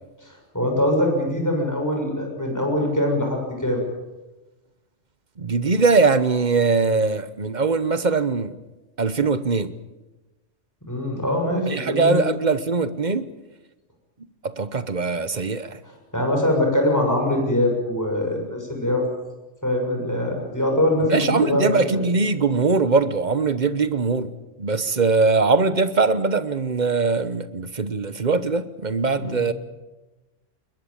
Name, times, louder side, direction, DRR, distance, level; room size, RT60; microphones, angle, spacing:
voice 1, 0.2-3.8 10.9-12.2 16.1-19.0 19.6-22.0 29.1-29.5, left 1 dB, 15° left, 6.8 m, -23 dB
voice 2, 5.4-8.6 9.0-9.7 11.7-13.3 14.4-15.8 21.1-24.3 24.6-29.5, right 4 dB, 40° right, 1.1 m, -21 dB
21.5 x 20.5 x 8.9 m
omnidirectional pair, 1.3 m